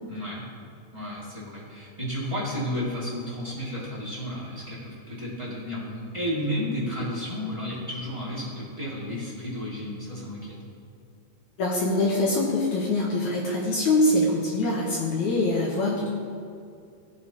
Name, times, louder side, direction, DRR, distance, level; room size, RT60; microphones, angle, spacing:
voice 1, 0.1-0.4 0.9-10.6, equal, 15° right, -8 dB, 1.2 m, -32 dB
voice 2, 11.6-16.1, left 2 dB, 70° left, -3 dB, 1.8 m, -24 dB
16.0 x 8.5 x 3.0 m, 2.4 s
omnidirectional pair, 4.7 m